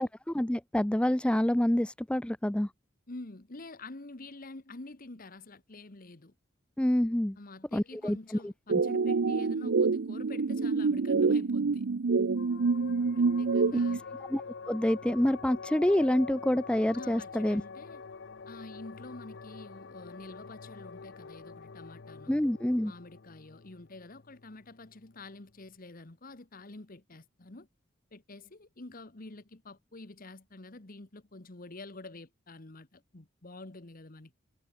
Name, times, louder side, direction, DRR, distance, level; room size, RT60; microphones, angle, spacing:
voice 1, 0.0-2.7 6.8-7.4 7.7-8.2 8.4-8.5 14.3-14.4 14.7-17.6 22.3-22.9, left 1 dB, 5° left, 0.4 m, -27 dB
voice 2, 3.1-6.3 7.3-11.9 13.1-14.1 16.9-18.0 18.5-22.4 22.8-27.7 28.1-34.4, left 2 dB, 45° left, 1.3 m, -48 dB
sound 1, 8.7-14.0, right 4 dB, 70° right, 0.6 m, -27 dB
sound 2, 12.3-25.2, left 5 dB, 60° left, 0.7 m, -46 dB
head